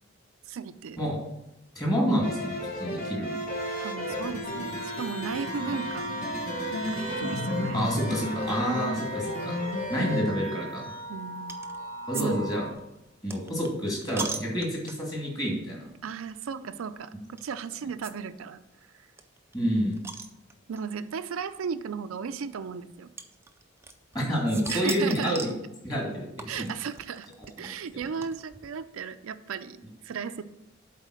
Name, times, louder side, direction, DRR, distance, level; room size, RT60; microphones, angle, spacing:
voice 1, 0.5-1.0 3.8-6.1 6.9-7.9 11.1-11.6 12.1-12.3 16.0-18.6 20.7-23.1 24.7-25.4 26.5-27.3 27.6-30.4, right 6 dB, 80° right, 10 dB, 0.4 m, -35 dB
voice 2, 1.8-3.4 7.7-9.6 9.9-10.9 12.1-12.7 13.2-15.8 19.5-20.0 24.1-25.5 25.8-26.7 27.6-27.7, equal, 20° left, -2 dB, 2.2 m, -28 dB
sound 1, 2.2-10.2, left 1 dB, 40° left, 1.3 m, -33 dB
sound 2, 4.4-12.7, right 1 dB, 65° left, 1.2 m, -38 dB
sound 3, 11.5-11.8 12.1-12.3 12.5-15.2 15.8-16.0 16.2-16.3 17.4-17.5 18.0-18.1 18.4-18.5 18.7-18.8 19.2-20.8 21.7-21.8 23.2-24.2 24.5-25.6 26.4-28.7, right 4 dB, 10° right, 0.3 m, -39 dB
7.4 x 4.2 x 6.3 m, 0.91 s
head